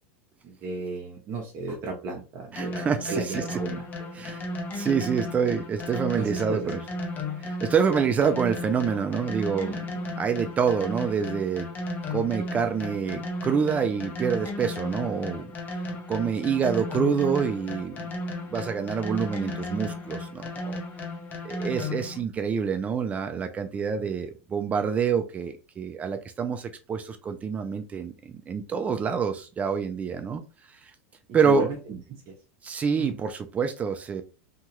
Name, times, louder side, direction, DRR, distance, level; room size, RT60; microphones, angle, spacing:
voice 1, 0.4-3.8 6.1-6.8 23.9-24.1 31.4-32.0 32.3-32.4 33.0-33.1, right 3 dB, 40° right, -1 dB, 0.7 m, -34 dB
voice 2, 2.5-3.6 4.2-4.4 4.7-6.8 7.4-9.8 10.2-11.7 12.1-15.8 16.1-18.0 18.5-20.8 21.4-30.4 30.8-30.9 31.3-31.7 32.6-34.2, right 6 dB, 20° right, 7 dB, 0.3 m, -27 dB
sound 1, 2.6-22.2, left 2 dB, 25° left, 0.6 m, -34 dB
2.8 x 2.3 x 3.0 m, 0.32 s
supercardioid pair, 130°, 7 cm